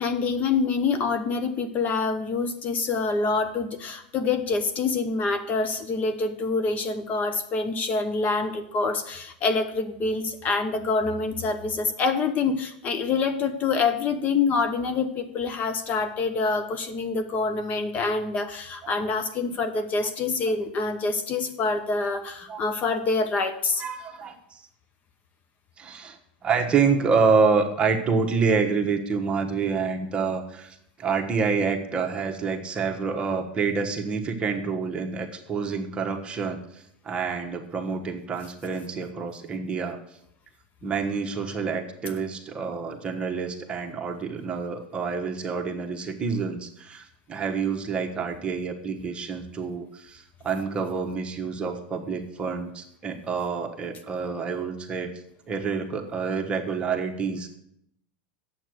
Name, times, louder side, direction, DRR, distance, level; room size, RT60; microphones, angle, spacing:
voice 1, 0.0-23.8, left 4 dB, 35° left, 9 dB, 0.8 m, -26 dB
voice 2, 23.8-24.6 25.8-26.2 26.4-40.0 40.8-55.1 55.5-57.6, right 5 dB, 20° right, 2 dB, 1.3 m, -27 dB
8.9 x 7.8 x 6.3 m, 0.74 s
supercardioid pair, 120°, 5 cm